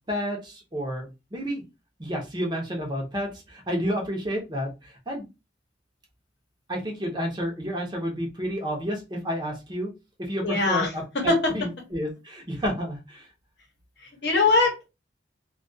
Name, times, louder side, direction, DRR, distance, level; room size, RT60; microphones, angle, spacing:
voice 1, 0.1-1.6 2.0-5.3 6.7-9.9 10.2-13.3, equal, 25° right, 0.6 m, -30 dB
voice 2, 10.4-11.6 14.0-14.9, left 3 dB, 60° left, 0.8 m, -23 dB
2.2 x 2.2 x 2.6 m
head